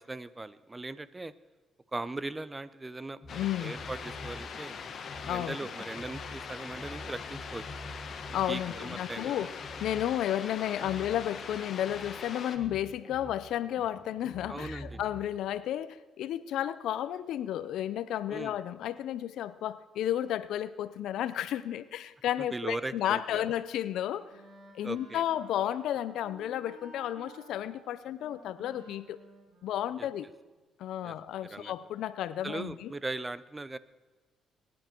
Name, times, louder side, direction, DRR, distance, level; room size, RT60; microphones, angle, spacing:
voice 1, 0.1-1.3 1.9-4.8 5.2-7.6 8.5-9.5 14.5-15.0 18.3-18.6 22.5-23.4 24.8-25.2 30.0-30.1 31.0-31.1 31.4-31.7 32.4-33.8, right 2 dB, 20° right, 17 dB, 0.6 m, -39 dB
sound 1, 3.2-15.2, left 1 dB, 15° left, 4.2 m, -48 dB
voice 2, 3.3-3.8 5.2-5.6 8.3-9.5 9.8-24.3 24.7-29.2 29.6-30.3 30.8-32.9, left 11 dB, 80° left, 15 dB, 0.6 m, -32 dB
sound 2, 3.3-12.6, left 6 dB, 55° left, 1.2 m, -42 dB
Wind instrument woodwind instrument, 23.8-30.5, right 2 dB, 60° right, 5.0 m, -55 dB
21.0 x 10.5 x 4.5 m, 1.3 s
cardioid pair, 90°, 0 cm